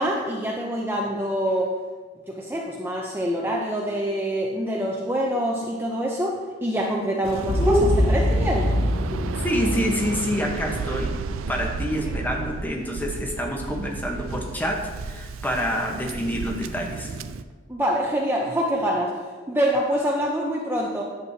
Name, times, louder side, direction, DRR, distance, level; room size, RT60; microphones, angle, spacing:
voice 1, 0.0-1.7 2.3-8.7 12.1-12.2 17.7-19.1 19.5-21.0, equal, 10° right, -2 dB, 0.5 m, -25 dB
Waves surf, 7.2-17.4, right 4 dB, 85° right, 0.4 m, -33 dB
Boom, 7.4-11.7, left 1 dB, 55° left, 0.7 m, -25 dB
voice 2, 7.6-8.0 9.0-11.1 11.5-17.2, equal, 10° left, 0 dB, 0.9 m, -27 dB
9.7 x 7.4 x 2.7 m, 1.4 s
head